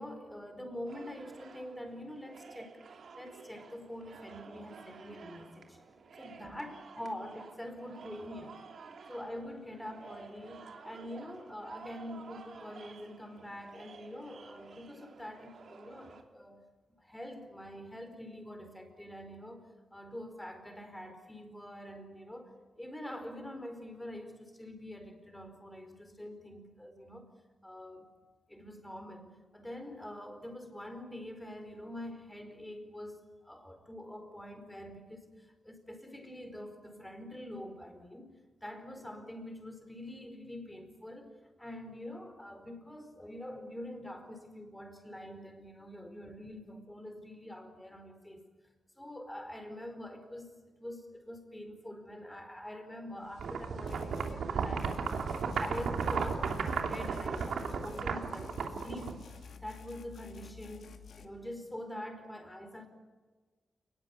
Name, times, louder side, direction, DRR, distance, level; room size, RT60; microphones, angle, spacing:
voice 1, 0.0-2.8 3.2-5.8 6.2-8.6 9.1-16.6 17.0-22.5 22.8-27.3 27.6-28.1 28.5-38.3 38.6-48.5 49.0-55.3 55.6-59.2 59.6-62.9, left 1 dB, 5° left, 6 dB, 4.5 m, -45 dB
sound 1, 0.9-16.2, right 5 dB, 60° right, 3.0 m, -52 dB
sound 2, 53.4-59.5, right 5 dB, 75° right, 3.0 m, -34 dB
sound 3, 53.9-54.4 54.8-58.1 58.3-61.3, left 6 dB, 65° left, 2.4 m, -51 dB
30.0 x 20.5 x 8.5 m, 1.4 s
wide cardioid pair, 155°, 0 cm